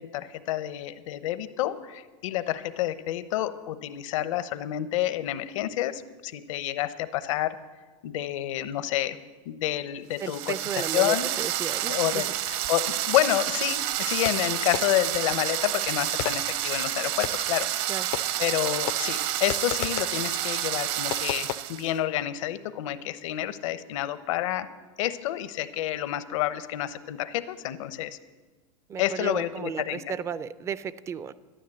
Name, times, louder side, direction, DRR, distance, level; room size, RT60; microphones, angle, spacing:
voice 1, 0.0-7.6 8.0-9.2 9.5-11.3 11.9-12.3 12.7-18.1 18.4-24.7 25.0-28.2 29.0-30.0, left 13 dB, 70° left, 13 dB, 0.9 m, -29 dB
voice 2, 10.2-12.2 17.9-18.1 28.9-31.3, right 7 dB, 15° right, 17 dB, 0.4 m, -34 dB
sound 1, 10.2-21.9, right 13 dB, 50° right, 0.8 m, -29 dB
Fireworks, 14.2-15.2 16.2-17.6 18.1-18.6 18.9-20.3 21.1-21.6, left 14 dB, 50° left, 0.5 m, -35 dB
12.5 x 10.5 x 7.7 m, 1.3 s
supercardioid pair, 145°, 17 cm